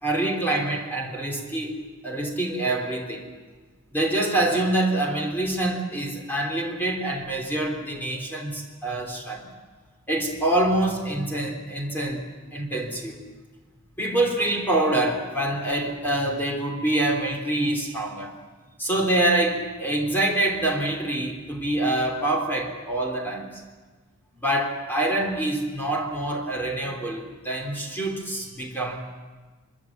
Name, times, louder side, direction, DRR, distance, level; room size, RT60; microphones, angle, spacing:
voice 1, 0.0-3.3 3.9-9.5 10.1-12.2 12.5-13.2 14.0-18.3 18.8-23.5 24.4-29.0, right 1 dB, 10° left, 0 dB, 3.8 m, -26 dB
25.5 x 24.5 x 7.5 m, 1.3 s
head